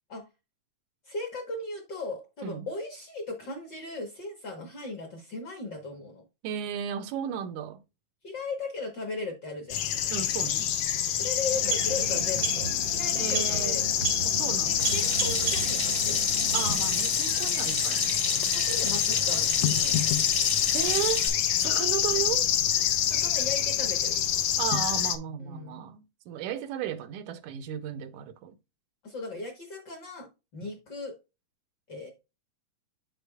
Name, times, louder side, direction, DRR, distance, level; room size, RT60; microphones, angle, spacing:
voice 1, 1.1-6.2 8.2-9.8 11.2-13.9 14.6-16.2 17.5-17.8 18.5-20.2 23.0-24.2 25.4-25.8 29.0-31.1 31.9-32.1, left 3 dB, 55° left, 1.3 m, -37 dB
voice 2, 6.4-7.8 10.1-10.7 13.2-13.8 14.3-14.9 16.5-18.2 20.7-21.3 21.6-22.5 24.6-28.6, right 10 dB, 90° right, 2.1 m, -34 dB
sound 1, 9.7-25.2, left 10 dB, 85° left, 1.3 m, -26 dB
sound 2, 11.3-17.1, right 7 dB, 70° right, 1.1 m, -34 dB
Water tap faucet / Sink (filling or washing), 14.8-21.3, equal, 15° left, 0.4 m, -33 dB
8.0 x 6.5 x 2.3 m
omnidirectional pair, 3.3 m